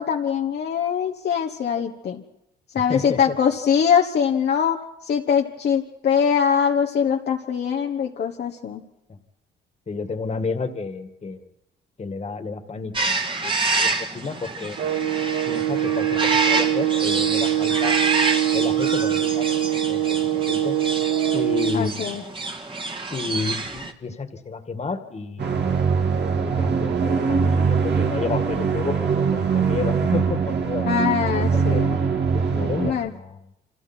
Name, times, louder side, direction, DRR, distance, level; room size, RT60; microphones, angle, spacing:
voice 1, 0.0-2.2 2.7-8.8 21.7-22.2 30.9-32.0 32.8-33.1, left 7 dB, 55° left, 2 dB, 1.4 m, -22 dB
voice 2, 2.9-3.4 9.9-11.5 12.0-14.8 15.5-18.0 18.5-19.6 19.9-20.8 21.3-22.2 23.1-25.7 26.3-31.8 32.3-33.4, left 4 dB, 35° left, 8 dB, 2.1 m, -31 dB
sound 1, 12.9-23.9, right 3 dB, 25° right, 2.0 m, -27 dB
sound 2, 14.8-21.8, right 12 dB, 85° right, 1.7 m, -23 dB
sound 3, 25.4-32.9, right 6 dB, 60° right, 2.5 m, -22 dB
29.5 x 25.0 x 4.5 m, 0.86 s
cardioid pair, 90°, 20 cm